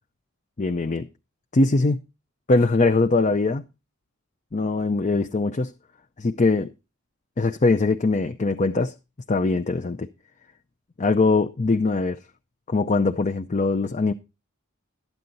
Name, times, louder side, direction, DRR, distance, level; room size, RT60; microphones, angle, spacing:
voice 1, 0.6-1.1 1.5-2.0 2.5-3.6 4.5-5.7 6.2-6.7 7.4-8.9 9.3-10.1 11.0-12.2 12.7-14.1, left 3 dB, 35° left, 0.5 m, -21 dB
13.0 x 9.2 x 4.0 m
head